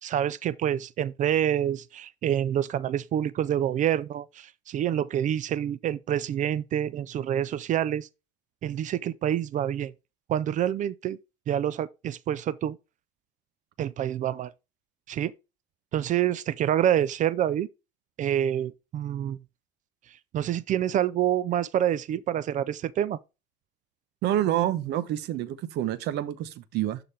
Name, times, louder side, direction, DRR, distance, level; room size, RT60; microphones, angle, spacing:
voice 1, 0.0-8.1 8.6-9.9 10.3-11.2 11.5-12.8 13.8-14.5 15.1-15.3 15.9-17.7 18.2-19.4 20.3-23.2, right 10 dB, 40° right, 0.4 m, -27 dB
voice 2, 24.2-27.0, right 12 dB, 65° right, 0.9 m, -28 dB
11.0 x 3.9 x 3.3 m
cardioid pair, 110°, 19 cm